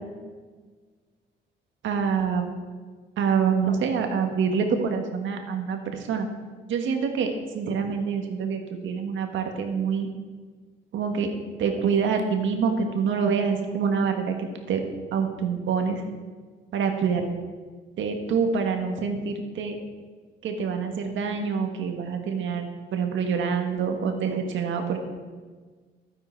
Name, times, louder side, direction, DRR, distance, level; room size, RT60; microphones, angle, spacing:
voice 1, 1.8-2.5 3.2-6.3 6.7-7.3 7.5-10.1 10.9-14.3 14.7-14.8 15.1-16.0 16.7-17.3 18.0-19.8 20.4-25.0, right 6 dB, 75° right, 5 dB, 1.6 m, -26 dB
11.5 x 9.6 x 4.6 m, 1.5 s
cardioid pair, 90°, 20 cm